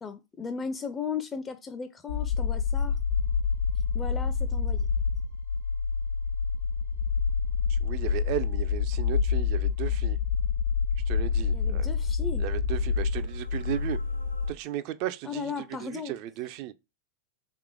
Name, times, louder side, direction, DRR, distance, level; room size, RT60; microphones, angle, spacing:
voice 1, 0.0-3.0 3.9-4.9 11.5-12.4 15.2-16.2, left 6 dB, 20° left, 0.4 m, -36 dB
sound 1, 2.1-14.5, left 5 dB, 90° left, 1.2 m, -27 dB
voice 2, 7.7-10.2 11.1-11.9 12.4-14.0 14.5-16.7, right 13 dB, 45° right, 0.4 m, -35 dB
3.5 x 3.0 x 3.6 m
figure-of-eight pair, 90°, 0 cm